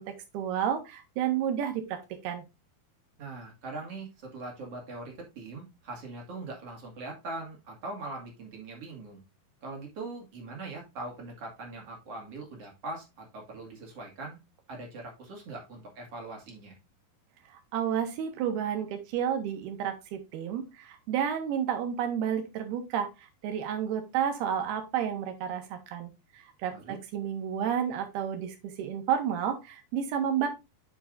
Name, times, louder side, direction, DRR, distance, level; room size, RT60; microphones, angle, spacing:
voice 1, 0.0-2.4 17.7-23.1 23.4-30.5, right 9 dB, 85° right, 6 dB, 3.2 m, -31 dB
voice 2, 3.2-9.2 9.6-14.4 14.7-16.8 26.7-27.0, right 2 dB, 45° right, 0 dB, 2.9 m, -41 dB
7.4 x 6.5 x 2.6 m, 0.24 s
omnidirectional pair, 4.5 m